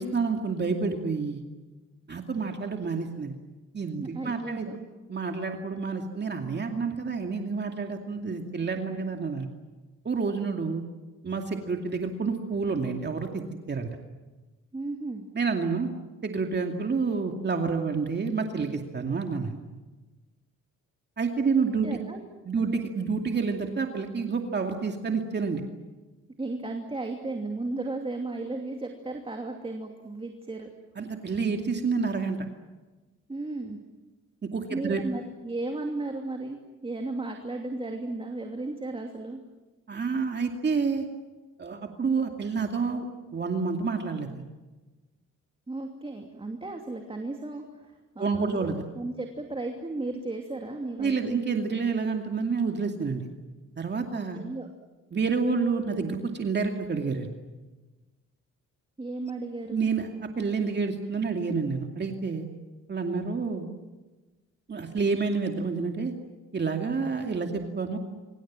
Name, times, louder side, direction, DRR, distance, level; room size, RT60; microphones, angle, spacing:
voice 1, 0.0-1.4 2.1-3.3 3.7-4.7 5.1-9.5 10.0-10.8 11.2-13.4 13.7-13.9 15.3-15.9 16.2-19.6 21.2-21.9 22.4-25.6 31.0-32.4 34.4-35.0 39.9-41.1 41.6-43.1 43.3-44.4 48.2-48.8 51.0-53.3 53.8-54.4 55.1-57.3 59.7-60.1 60.4-62.5 62.9-63.7 64.7-66.1 66.5-68.0, right 4 dB, 35° right, 3 dB, 2.4 m, -29 dB
voice 2, 4.0-4.8 14.7-15.3 21.6-22.2 22.6-22.8 26.4-30.7 33.3-33.8 34.7-39.4 45.7-48.7 49.0-51.4 54.3-54.7 59.0-59.9, right 2 dB, 20° right, 3 dB, 2.8 m, -35 dB
25.5 x 25.5 x 7.5 m, 1.2 s
cardioid pair, 90°, 30 cm